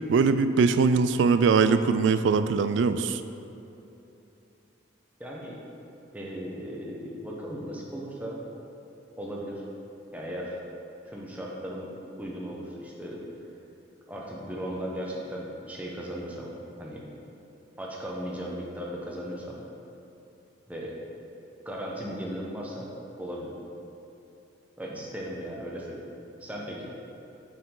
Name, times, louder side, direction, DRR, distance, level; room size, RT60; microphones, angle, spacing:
voice 1, 0.1-3.2, right 5 dB, 70° right, 11 dB, 0.3 m, -22 dB
voice 2, 5.2-5.6 6.1-8.4 9.2-9.6 10.1-10.6 11.0-11.9 12.2-13.2 14.1-16.5 16.8-17.0 17.8-19.6 20.7-21.0 21.6-22.9 23.2-23.5 24.8-26.1 26.4-27.0, equal, 10° right, -4 dB, 0.9 m, -36 dB
7.0 x 6.0 x 3.8 m, 2.9 s
head